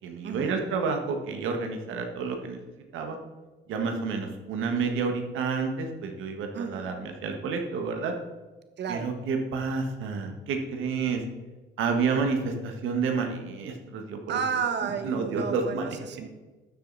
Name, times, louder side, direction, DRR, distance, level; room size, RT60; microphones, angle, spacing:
voice 1, 0.0-2.6 2.9-3.2 3.7-8.1 8.9-11.2 11.8-14.4 15.0-16.2, right 5 dB, 85° right, 4 dB, 1.7 m, -29 dB
voice 2, 6.5-6.9 8.8-9.1 14.3-16.3, right 6 dB, 60° right, 8 dB, 1.3 m, -32 dB
12.5 x 7.6 x 4.2 m, 1.2 s
cardioid pair, 90°, 20 cm